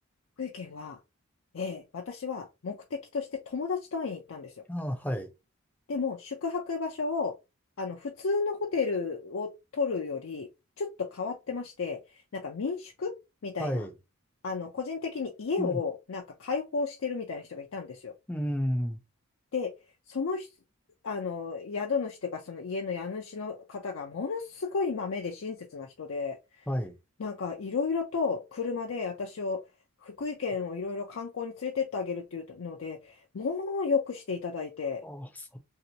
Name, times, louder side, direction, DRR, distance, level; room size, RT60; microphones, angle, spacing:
voice 1, 0.4-1.0 1.5-4.6 5.9-7.3 7.8-10.5 10.8-13.1 13.4-13.8 14.4-18.1 19.5-19.7 20.1-20.5 21.0-26.6 27.2-29.6 30.0-35.0, left 4 dB, 70° left, 0.5 m, -33 dB
voice 2, 4.7-5.3 13.6-13.9 15.6-15.8 18.3-19.0 26.7-26.9 35.0-35.6, equal, 10° left, 0.5 m, -32 dB
2.9 x 2.8 x 2.8 m
head